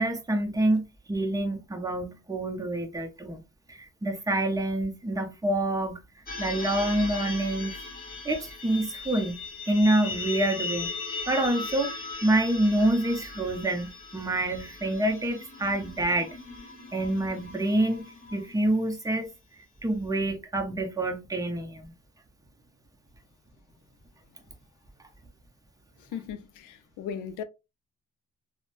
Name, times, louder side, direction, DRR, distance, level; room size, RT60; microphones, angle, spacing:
voice 1, 0.0-3.4 3.7-6.0 6.4-7.8 8.2-9.4 9.7-10.9 11.3-11.9 12.2-16.4 16.9-18.0 18.3-19.3 19.8-21.9, right 1 dB, 10° right, 0.6 m, -27 dB
sound 1, 6.3-18.8, left 4 dB, 30° left, 1.3 m, -38 dB
voice 2, 26.0-27.4, left 8 dB, 80° left, 0.5 m, -37 dB
3.0 x 2.1 x 2.5 m
cardioid pair, 90°, 30 cm